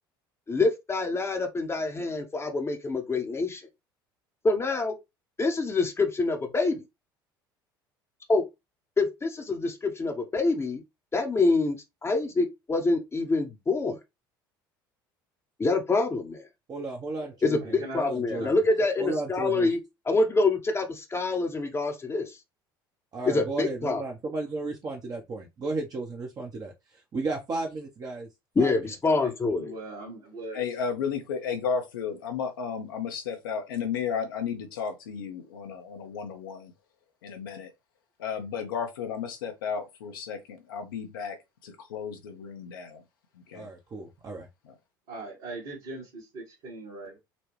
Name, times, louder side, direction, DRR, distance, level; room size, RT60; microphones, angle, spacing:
voice 1, 0.5-3.6 4.4-5.0 5.4-6.8 8.3-8.4 9.0-10.8 11.1-11.8 12.0-14.0 15.6-16.4 17.4-19.8 20.1-22.4 23.3-24.0 28.6-29.7, left 3 dB, 20° left, 0.8 m, -26 dB
voice 2, 16.7-18.5 19.0-19.7 23.1-26.7 27.1-28.3 28.6-28.7 43.5-44.5, right 3 dB, 35° right, 0.8 m, -34 dB
voice 3, 17.6-18.1 18.3-18.5 29.1-30.6 45.1-47.2, right 2 dB, 60° right, 1.7 m, -40 dB
voice 4, 30.5-36.7 37.2-37.7 38.2-41.4 41.6-43.0 43.3-43.7 44.6-44.7, left 6 dB, 70° left, 0.8 m, -33 dB
4.0 x 2.2 x 3.2 m
figure-of-eight pair, 60°, 12 cm